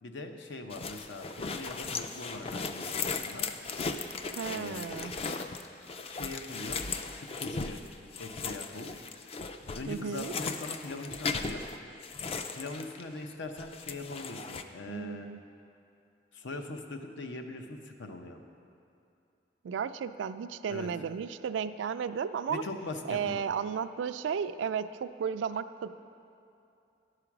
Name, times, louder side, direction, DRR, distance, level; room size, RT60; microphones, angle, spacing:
voice 1, 0.0-3.5 4.5-5.5 6.1-6.8 7.2-7.8 8.2-8.9 9.7-11.6 12.5-15.3 16.3-18.4 20.7-20.9 22.5-23.4, left 2 dB, 90° left, 5 dB, 0.7 m, -41 dB
sound 1, 0.7-13.3 13.6-14.6, left 4 dB, 30° left, 0.3 m, -37 dB
voice 2, 4.3-5.1 9.9-10.3 14.9-15.4 19.6-22.6 23.1-25.9, right 7 dB, 90° right, 12 dB, 0.3 m, -34 dB
11.0 x 4.9 x 5.9 m, 2.7 s
head